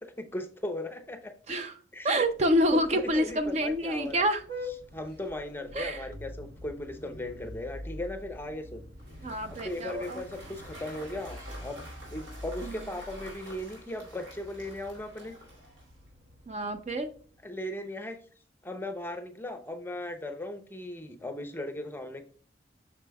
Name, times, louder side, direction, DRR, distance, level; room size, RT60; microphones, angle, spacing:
voice 1, 0.2-1.3 1.9-2.1 2.9-4.3 4.9-8.9 9.5-11.8 12.1-15.3 17.4-18.2 18.6-22.2, left 1 dB, 10° left, 7 dB, 0.6 m, -37 dB
voice 2, 2.0-4.4 5.7-6.0 9.2-10.2 12.6-12.8 16.5-17.1, equal, 35° right, 8 dB, 0.4 m, -27 dB
Vehicle horn car horn honking, 2.1-17.5, left 1 dB, 55° right, 0.9 m, -46 dB
Cheering / Applause / Crowd, 9.0-16.1, right 1 dB, 85° right, 2.8 m, -49 dB
8.1 x 6.0 x 2.2 m, 0.42 s
head